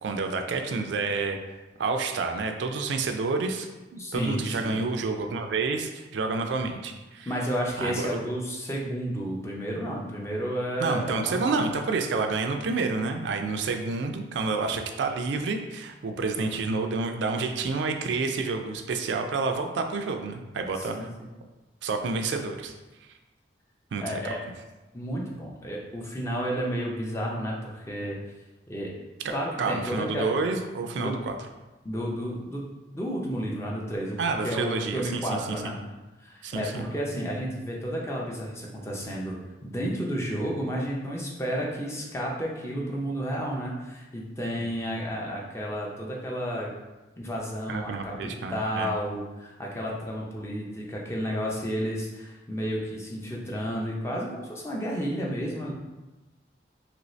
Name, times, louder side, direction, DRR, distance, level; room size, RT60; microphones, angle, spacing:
voice 1, 0.0-1.4 1.8-7.3 7.8-8.1 10.8-21.1 21.8-22.7 23.9-24.3 29.2-29.3 29.6-31.4 34.2-35.2 35.5-35.7 36.4-36.9 44.6-44.7 47.7-48.9, right 4 dB, 80° right, 5 dB, 0.3 m, -29 dB
voice 2, 4.0-4.8 7.3-11.6 20.8-21.1 24.0-24.4 24.9-28.2 28.7-28.9 29.3-30.3 31.0-31.2 31.8-34.2 34.4-35.8 36.2-39.3 39.6-46.7 47.2-55.7, equal, 15° left, -3 dB, 0.4 m, -31 dB
3.0 x 2.6 x 3.1 m, 1.1 s
head